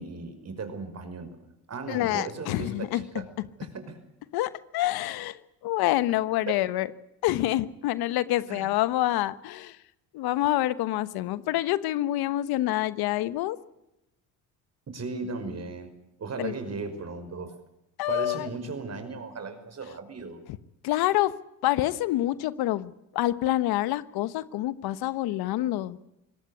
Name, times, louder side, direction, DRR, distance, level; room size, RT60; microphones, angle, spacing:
voice 1, 0.0-3.2 3.6-4.0 6.5-6.6 8.5-8.7 14.9-15.9 16.2-17.5 18.1-20.4, right 4 dB, 45° right, 9 dB, 5.6 m, -36 dB
voice 2, 1.9-3.0 4.3-5.4 5.6-6.9 7.2-9.8 10.1-13.6 16.4-16.5 18.0-18.5 20.8-21.4 21.6-26.1, left 15 dB, 80° left, 15 dB, 1.2 m, -27 dB
23.0 x 18.5 x 8.2 m, 0.89 s
supercardioid pair, 75°, 37 cm